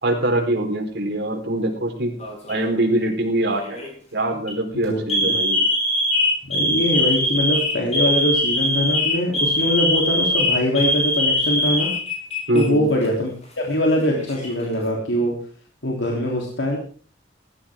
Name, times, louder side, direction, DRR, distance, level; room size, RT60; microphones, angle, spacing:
voice 1, 0.0-2.1 2.5-3.8 4.1-5.6 12.5-12.8, right 1 dB, 65° right, 2 dB, 4.3 m, -23 dB
Alarm, 2.2-2.7 3.6-3.9 4.3-4.5 5.1-12.6 12.9-13.1 14.0-14.7, left 1 dB, 35° left, 7.0 m, -22 dB
voice 2, 4.7-5.3 6.4-11.9 12.5-13.3 13.6-15.4 15.8-16.8, equal, 75° left, -1 dB, 3.5 m, -22 dB
17.5 x 14.5 x 3.7 m, 0.41 s
head